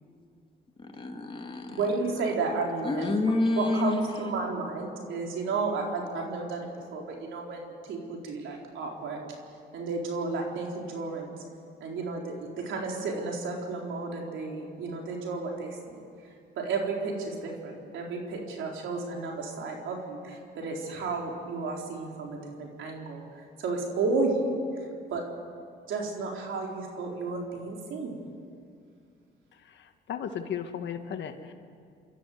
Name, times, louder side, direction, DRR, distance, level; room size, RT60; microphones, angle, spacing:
voice 1, 0.8-1.8 2.8-4.0, left 2 dB, 25° left, 2 dB, 2.7 m, -28 dB
voice 2, 1.7-3.1 3.6-9.2 9.7-11.4 11.8-16.0 16.6-24.8 25.1-25.2 25.9-28.2, right 3 dB, 80° right, 0 dB, 4.2 m, -32 dB
voice 3, 30.1-31.5, left 8 dB, 65° left, 7 dB, 1.6 m, -34 dB
27.0 x 13.5 x 8.1 m, 2.2 s
cardioid pair, 90°, 20 cm